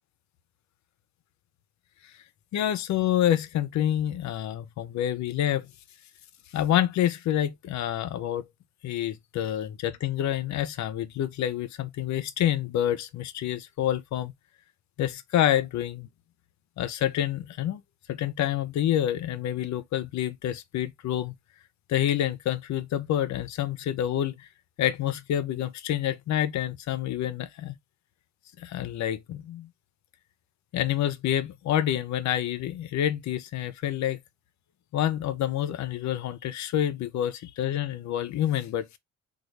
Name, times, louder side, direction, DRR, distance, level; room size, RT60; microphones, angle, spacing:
voice 1, 2.5-5.7 6.5-8.4 8.8-14.3 15.0-16.1 16.8-17.8 18.1-21.3 21.9-24.5 24.8-27.8 28.6-29.7 30.7-34.2 34.9-39.0, left 11 dB, 70° left, 0.6 m, -28 dB
3.0 x 2.3 x 3.2 m
cardioid pair, 90°, 30 cm